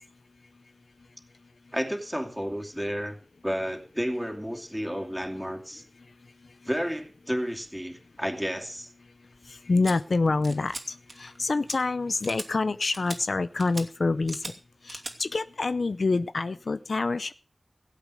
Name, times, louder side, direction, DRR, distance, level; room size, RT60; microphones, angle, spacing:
voice 1, 1.7-3.2 3.4-5.8 6.7-8.9, equal, ahead, 2 dB, 2.8 m, -31 dB
voice 2, 9.5-14.4 14.9-17.3, left 3 dB, 90° left, 13 dB, 0.6 m, -27 dB
sound 1, 9.8-9.9 10.4-10.8 11.1-11.4 11.7-11.8 12.2-12.5 12.9-13.2 13.6-13.9 14.3-14.5 14.9-15.1, right 2 dB, 55° right, 2.6 m, -38 dB
17.5 x 8.4 x 6.4 m, 0.37 s
wide cardioid pair, 55°, 0 cm